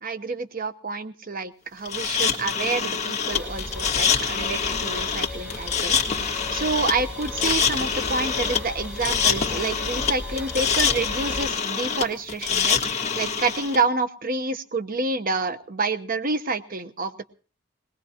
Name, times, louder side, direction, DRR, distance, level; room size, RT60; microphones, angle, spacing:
voice 1, 0.0-17.3, right 3 dB, 50° right, 10 dB, 1.0 m, -28 dB
sound 1, 1.9-13.8, left 6 dB, 35° left, 1.7 m, -25 dB
sound 2, 3.3-11.5, left 1 dB, 5° right, 5.1 m, -35 dB
21.0 x 20.0 x 2.9 m, 0.38 s
head